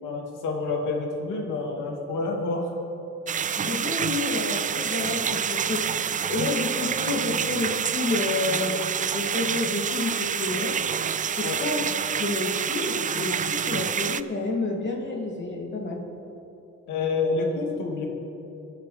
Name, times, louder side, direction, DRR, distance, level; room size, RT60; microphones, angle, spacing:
voice 1, 0.0-2.7 11.4-11.6 16.9-18.1, left 3 dB, 90° left, -1 dB, 2.5 m, -28 dB
sound 1, 3.3-14.2, right 7 dB, 25° right, 0.3 m, -27 dB
voice 2, 3.6-8.8 9.1-10.8 11.4-11.9 12.2-16.0, left 3 dB, 40° left, -1 dB, 3.0 m, -29 dB
23.0 x 9.9 x 3.6 m, 2.9 s
cardioid pair, 90°, 30 cm